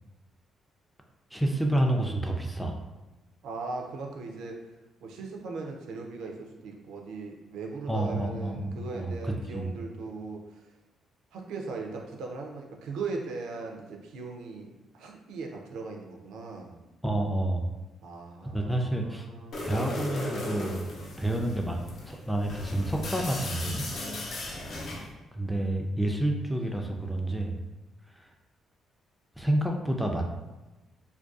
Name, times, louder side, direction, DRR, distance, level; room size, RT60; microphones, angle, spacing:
voice 1, 1.3-2.8 7.9-9.7 17.0-17.6 18.5-19.3 19.6-20.9 21.2-23.9 25.3-27.6 28.1-28.3 29.4-30.2, right 1 dB, ahead, 2 dB, 0.3 m, -29 dB
voice 2, 3.4-4.6 5.0-10.7 11.3-16.8 18.0-19.9 21.0-21.3 24.4-24.8, right 4 dB, 85° right, 1 dB, 0.4 m, -39 dB
sound 1, 19.5-25.1, left 2 dB, 65° left, 0.5 m, -37 dB
2.5 x 2.2 x 2.4 m, 1.1 s
cardioid pair, 90°, 0 cm